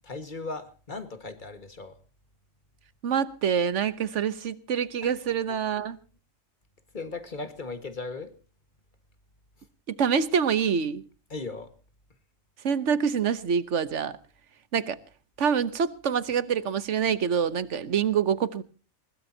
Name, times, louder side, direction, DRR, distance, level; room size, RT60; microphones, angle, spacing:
voice 1, 0.0-2.0 5.0-5.1 5.5-5.6 6.9-8.3 11.3-11.7, left 3 dB, 35° left, 1.8 m, -37 dB
voice 2, 3.0-6.0 9.9-11.0 12.6-14.2 14.7-15.0 15.4-18.6, right 7 dB, 65° right, 1.3 m, -26 dB
21.0 x 20.5 x 2.8 m
omnidirectional pair, 1.4 m